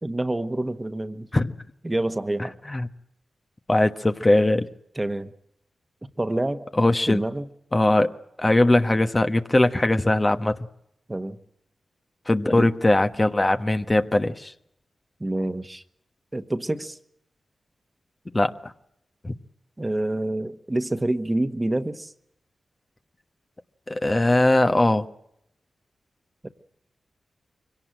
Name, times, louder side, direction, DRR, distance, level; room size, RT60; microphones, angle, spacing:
voice 1, 0.0-1.3 1.8-2.5 4.9-5.3 6.2-6.7 7.1-7.5 11.1-11.4 12.5-12.7 15.2-15.8 16.3-17.0 19.8-22.1 26.4-26.5, right 1 dB, 25° right, 10 dB, 1.4 m, -27 dB
voice 2, 3.7-4.7 6.8-7.2 7.7-8.1 8.4-10.6 12.3-14.5 18.3-18.5 19.2-19.3 23.9-25.1, left 1 dB, 30° left, 8 dB, 1.2 m, -20 dB
23.5 x 17.5 x 9.0 m, 0.76 s
supercardioid pair, 40°, 0 cm